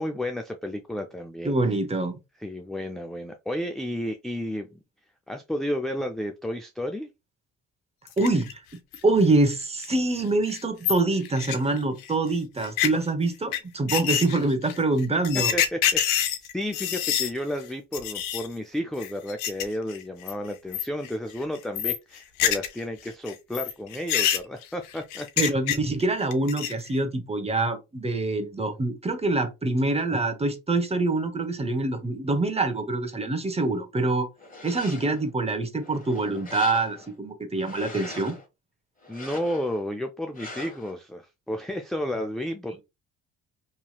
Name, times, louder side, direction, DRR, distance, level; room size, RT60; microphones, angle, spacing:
voice 1, 0.0-1.5 2.4-4.8 5.3-7.1 15.5-16.2 16.5-25.5 39.1-42.8, left 1 dB, ahead, 0.3 m, -32 dB
voice 2, 1.4-2.2 8.2-8.6 9.0-15.5 25.4-34.3 34.6-38.4, right 2 dB, 20° right, 0.8 m, -25 dB
sound 1, 8.1-8.5 8.9-9.0 9.5-9.6 9.8-9.9 10.2-10.3 10.5-12.1 12.6-12.9 13.5-13.6 13.9-17.3 17.6-17.7 17.9-18.5 19.0-19.6 19.9-20.3 20.7-21.1 21.4-22.8 23.1-26.0 26.3-26.9, left 10 dB, 80° left, 0.6 m, -26 dB
sound 2, 34.4-35.3 35.8-37.1 37.5-38.4 39.0-39.8 40.3-40.9, left 2 dB, 25° left, 1.3 m, -41 dB
3.1 x 2.7 x 2.3 m
supercardioid pair, 60°, 34 cm